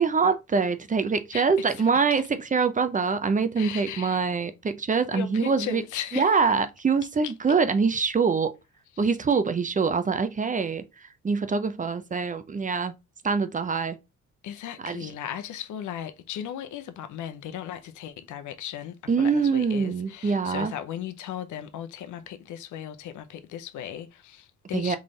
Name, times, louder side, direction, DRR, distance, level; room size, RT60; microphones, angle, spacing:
voice 1, 0.0-2.2 2.5-5.8 6.1-8.5 9.0-12.9 13.2-14.0 14.8-15.1 19.1-20.7 24.7-25.0, right 5 dB, 25° right, 0.6 m, -24 dB
voice 2, 1.3-2.2 3.6-4.3 5.1-6.4 7.2-7.3 9.0-9.1 14.4-25.0, left 10 dB, 75° left, 0.7 m, -37 dB
3.8 x 3.2 x 3.9 m
cardioid pair, 90°, 30 cm